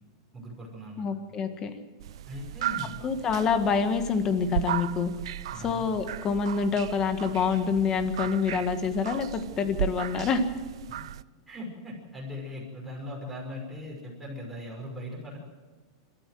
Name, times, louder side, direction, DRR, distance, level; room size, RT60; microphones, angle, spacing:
voice 1, 0.3-1.1 2.3-3.0 5.5-5.9 10.9-11.0 11.5-15.4, left 1 dB, 5° right, -3 dB, 5.9 m, -39 dB
voice 2, 1.0-1.7 3.0-5.1 5.6-10.4, left 5 dB, 20° left, 8 dB, 1.7 m, -26 dB
sound 1, 2.0-11.2, right 11 dB, 75° right, 0.6 m, -36 dB
25.5 x 13.5 x 7.8 m, 1.4 s
supercardioid pair, 165°, 3 cm